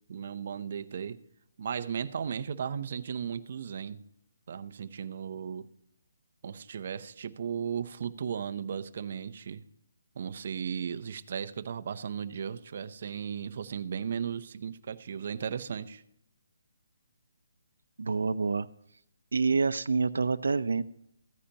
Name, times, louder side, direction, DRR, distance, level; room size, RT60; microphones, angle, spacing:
voice 1, 0.1-1.2 1.6-4.0 4.5-5.7 6.4-9.6 10.2-16.0, right 7 dB, 40° right, 12 dB, 0.7 m, -36 dB
voice 2, 18.0-18.7 19.3-20.8, right 4 dB, 80° right, 14 dB, 0.7 m, -27 dB
15.0 x 9.9 x 2.9 m, 0.76 s
hypercardioid pair, 175°, 0 cm